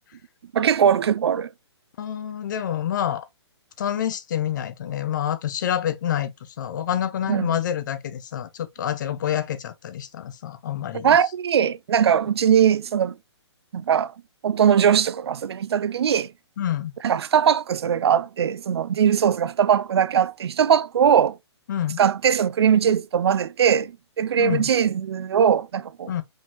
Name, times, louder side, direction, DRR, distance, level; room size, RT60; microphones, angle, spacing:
voice 1, 0.5-1.5 7.3-7.5 11.0-13.2 13.7-14.1 14.4-16.3 17.0-21.4 22.0-26.1, right 8 dB, 60° right, 0.5 m, -20 dB
voice 2, 2.0-3.3 3.8-11.2 16.6-16.9 21.7-22.0 24.4-24.7 26.1-26.2, left 10 dB, 40° left, 0.8 m, -27 dB
5.2 x 3.6 x 2.8 m
hypercardioid pair, 165°, 15 cm